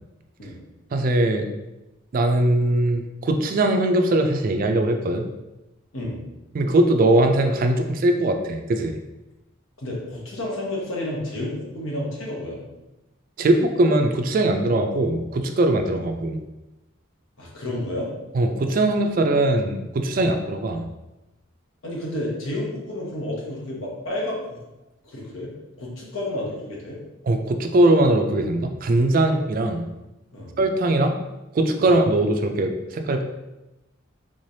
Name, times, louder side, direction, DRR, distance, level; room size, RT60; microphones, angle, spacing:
voice 1, 0.9-1.5 2.1-5.3 6.5-9.0 13.4-16.4 18.3-20.9 27.3-29.9 30.6-31.2 31.5-33.2, right 1 dB, 45° right, 6 dB, 0.3 m, -20 dB
voice 2, 9.8-12.6 17.4-18.1 20.1-20.3 21.8-24.6 25.0-25.5 25.8-27.0 30.3-30.5 31.8-31.9, left 1 dB, 80° left, -3 dB, 1.0 m, -30 dB
3.6 x 3.2 x 2.6 m, 0.99 s
head